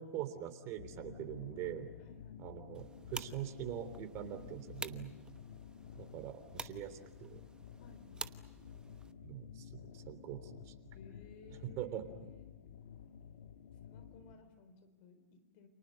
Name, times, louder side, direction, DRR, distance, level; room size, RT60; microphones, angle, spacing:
voice 1, 0.0-1.9 2.4-5.1 5.9-7.4 9.2-10.7 11.8-12.3, right 10 dB, 40° right, 8 dB, 3.3 m, -43 dB
sound 1, 0.8-14.3, left 8 dB, 65° left, 2.0 m, -52 dB
voice 2, 2.0-2.5 4.2-4.5 7.8-8.3 10.9-11.9 12.2-12.6 13.8-15.7, left 4 dB, 50° left, 8 dB, 4.0 m, -59 dB
sound 2, 2.7-9.1, right 4 dB, 10° right, 1.1 m, -50 dB
29.5 x 28.0 x 6.6 m, 1.1 s
hypercardioid pair, 110°, 8 cm